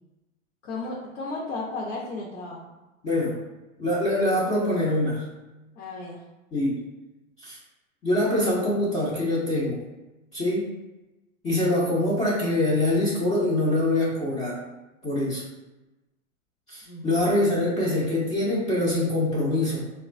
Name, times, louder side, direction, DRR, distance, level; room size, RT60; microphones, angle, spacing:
voice 1, 0.6-2.7 5.7-6.2 16.9-17.2, left 2 dB, 60° left, -5 dB, 0.8 m, -34 dB
voice 2, 3.0-3.4 3.8-5.2 6.5-6.8 7.4-7.6 8.0-9.8 10.3-10.7 11.4-14.6 15.0-15.4 16.7-19.9, left 1 dB, 15° left, -8 dB, 0.5 m, -24 dB
3.4 x 2.2 x 2.5 m, 1.0 s
hypercardioid pair, 115°, 41 cm